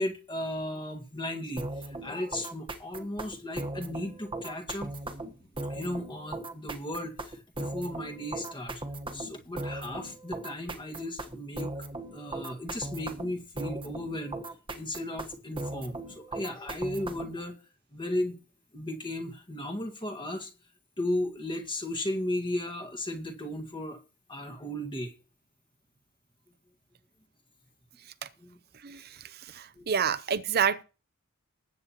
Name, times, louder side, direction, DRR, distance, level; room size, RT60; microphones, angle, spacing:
voice 1, 0.0-4.9 5.6-8.8 9.1-11.7 12.1-14.4 14.7-17.6 17.9-18.4 18.7-20.5 21.0-24.0 24.3-25.1 28.4-28.6 29.8-29.9, left 1 dB, 20° left, 1.8 m, -35 dB
sound 1, 1.6-17.4, right 2 dB, 25° right, 1.3 m, -38 dB
voice 2, 29.9-30.8, right 7 dB, 45° right, 0.7 m, -26 dB
20.0 x 8.8 x 3.0 m
head